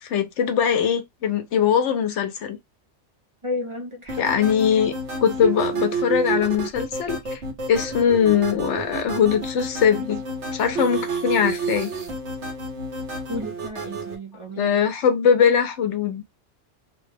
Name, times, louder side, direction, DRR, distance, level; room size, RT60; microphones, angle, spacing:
voice 1, 0.0-2.6 4.2-4.9 5.2-7.2 7.7-10.2 10.5-11.9 14.6-16.2, left 8 dB, 80° left, 1.0 m, -21 dB
voice 2, 3.4-4.2 13.3-14.7, left 1 dB, 35° right, 0.5 m, -32 dB
sound 1, 4.1-14.2, right 3 dB, 75° right, 1.4 m, -30 dB
3.1 x 2.1 x 3.3 m
omnidirectional pair, 1.2 m